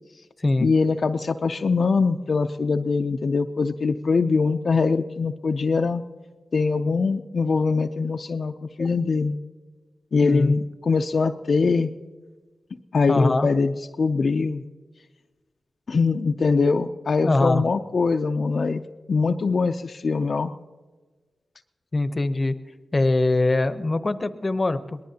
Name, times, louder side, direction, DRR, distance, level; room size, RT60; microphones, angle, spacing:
voice 1, 0.6-6.0 6.5-9.4 10.1-11.9 12.9-14.6 15.9-18.8 19.1-20.5, left 4 dB, 65° left, 5 dB, 0.5 m, -22 dB
voice 2, 10.2-10.5 13.1-13.5 17.2-17.6 21.9-22.5 22.9-25.0, left 2 dB, 35° left, 11 dB, 0.8 m, -22 dB
23.0 x 19.0 x 2.8 m, 1.3 s
cardioid pair, 70°, 0 cm